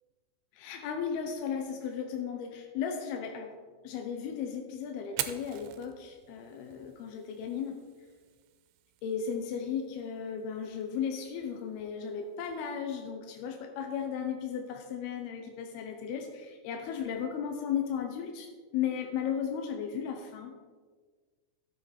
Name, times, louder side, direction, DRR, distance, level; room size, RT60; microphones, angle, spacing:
voice 1, 0.5-3.5 3.8-7.8 9.0-20.5, left 7 dB, 85° left, 4 dB, 2.8 m, -35 dB
Fire, 5.0-13.0, right 12 dB, 90° right, 2.5 m, -45 dB
12.5 x 7.5 x 4.3 m, 1.5 s
omnidirectional pair, 4.4 m